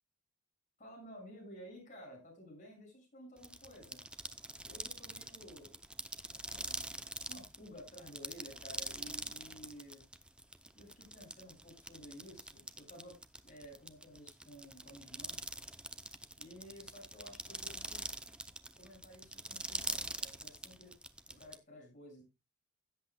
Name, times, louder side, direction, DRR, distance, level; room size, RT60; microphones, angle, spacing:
voice 1, 0.8-4.0 4.6-5.8 6.3-6.9 7.3-10.1 10.7-13.2 13.4-15.4 16.4-18.1 18.7-20.9 21.3-22.2, equal, 35° left, -1 dB, 6.7 m, -53 dB
sound 1, 3.4-21.6, right 2 dB, 5° right, 0.5 m, -44 dB
16.5 x 8.1 x 2.3 m, 0.24 s
head